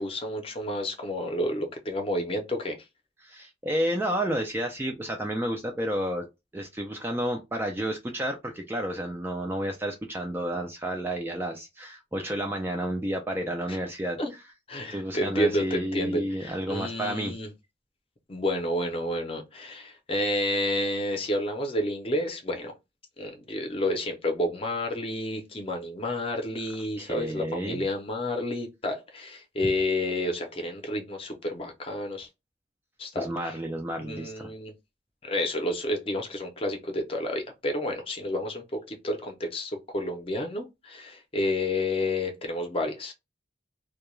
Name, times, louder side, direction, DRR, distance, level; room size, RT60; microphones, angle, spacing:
voice 1, 0.0-2.8 13.7-13.8 14.2-14.3 14.7-17.5 18.3-22.7 23.2-32.3 33.0-33.6 34.0-34.7 35.2-43.1, left 1 dB, 30° left, 0.6 m, -30 dB
voice 2, 3.2-6.3 6.5-14.2 14.9-17.3 27.0-27.9 33.2-34.5, right 1 dB, 10° right, 0.3 m, -31 dB
2.2 x 2.2 x 3.0 m
head